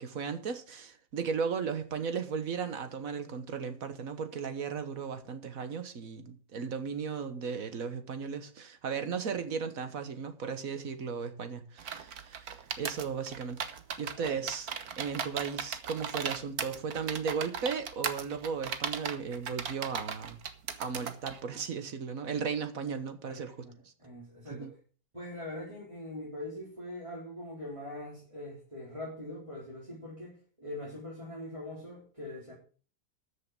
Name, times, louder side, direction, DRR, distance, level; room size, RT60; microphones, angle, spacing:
voice 1, 0.0-13.7 14.0-20.4 20.8-23.5 24.5-24.7, right 6 dB, 70° right, 1.7 m, -36 dB
sound 1, 11.8-21.4, right 7 dB, 90° right, 1.6 m, -37 dB
voice 2, 14.1-14.4 23.2-24.7 25.1-32.5, left 1 dB, 20° right, 4.4 m, -42 dB
13.5 x 6.7 x 6.1 m
omnidirectional pair, 1.5 m